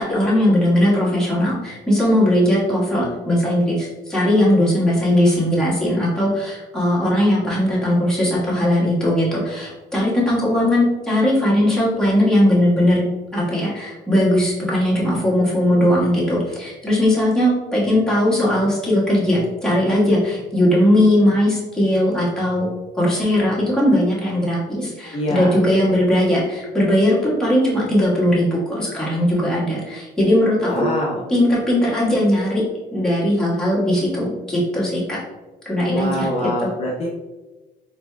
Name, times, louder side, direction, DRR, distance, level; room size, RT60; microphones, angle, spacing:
voice 1, 0.0-13.0 13.3-22.7 23.0-30.9 31.3-32.6 32.9-35.2 35.6-36.3, left 1 dB, 5° left, -7 dB, 1.4 m, -19 dB
voice 2, 25.1-25.5 30.6-31.2 35.9-37.1, left 1 dB, 40° left, -3 dB, 0.6 m, -24 dB
4.1 x 3.3 x 2.2 m, 1.2 s
cardioid pair, 110°, 17 cm